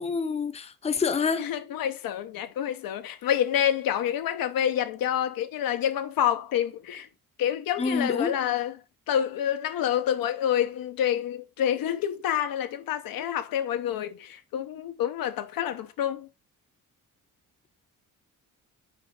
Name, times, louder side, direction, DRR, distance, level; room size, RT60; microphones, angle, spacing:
voice 1, 0.0-1.5 7.8-8.4, left 5 dB, 20° left, 0.6 m, -27 dB
voice 2, 1.4-7.1 7.4-8.7 9.1-16.3, left 10 dB, 90° left, 0.9 m, -28 dB
5.8 x 4.8 x 3.7 m
cardioid pair, 160°, 34 cm